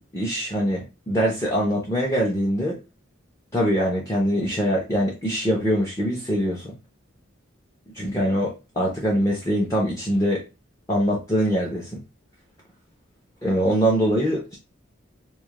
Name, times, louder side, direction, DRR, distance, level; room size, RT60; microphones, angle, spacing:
voice 1, 0.1-2.8 3.5-6.7 7.9-10.4 10.9-12.0 13.4-14.6, equal, 15° left, 0.4 m, -23 dB
2.2 x 2.0 x 2.8 m
head